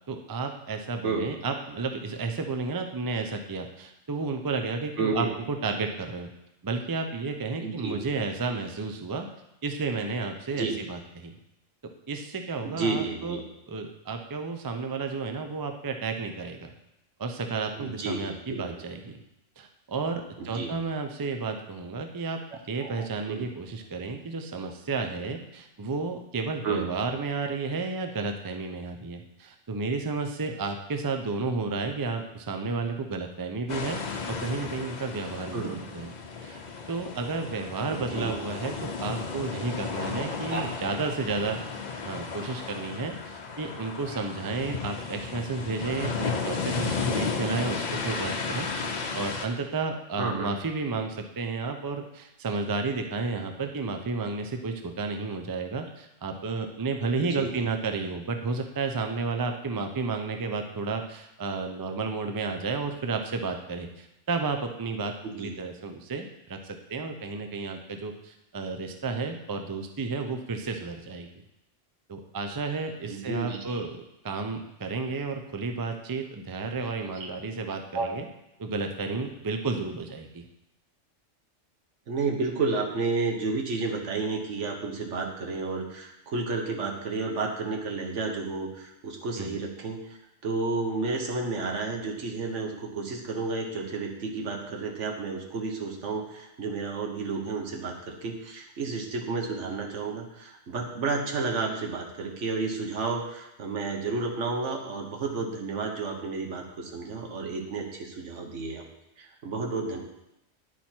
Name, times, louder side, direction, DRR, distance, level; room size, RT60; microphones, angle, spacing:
voice 1, 0.1-6.3 6.6-9.3 9.6-11.3 11.8-13.4 13.7-16.7 17.2-19.1 19.6-22.4 22.7-36.1 36.4-36.6 36.9-41.6 42.0-71.3 72.1-78.3 78.6-80.4 89.4-89.6, right 4 dB, 35° right, 5 dB, 0.3 m, -32 dB
voice 2, 5.0-5.3 7.6-8.0 10.5-10.8 12.6-13.4 17.7-18.6 20.4-20.8 22.5-23.4 26.6-26.9 35.5-35.8 37.8-38.4 40.3-40.7 50.2-50.5 57.2-57.5 65.2-65.5 73.0-73.8 77.2-77.3 77.9-78.1 82.1-108.9 109.2-110.0, right 3 dB, 75° right, 2 dB, 1.4 m, -31 dB
sound 1, 33.7-49.5, left 5 dB, 45° left, 0.7 m, -34 dB
10.0 x 4.4 x 4.4 m, 0.87 s
omnidirectional pair, 1.3 m